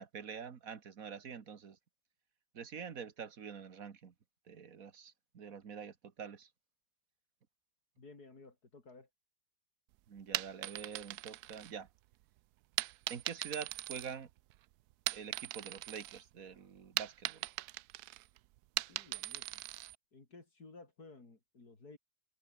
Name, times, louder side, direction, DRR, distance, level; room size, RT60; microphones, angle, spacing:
voice 1, 0.0-1.8 2.5-4.1 4.5-6.5 10.1-11.9 13.1-14.3 15.1-17.5, right 6 dB, 65° right, 1.9 m, -46 dB
voice 2, 8.0-9.1 18.9-19.6 20.1-22.0, left 3 dB, 90° left, 4.6 m, -55 dB
sound 1, 10.2-12.1 12.8-14.6 14.9-16.2 16.5-20.0, right 16 dB, 90° right, 1.1 m, -40 dB
omnidirectional pair, 1.6 m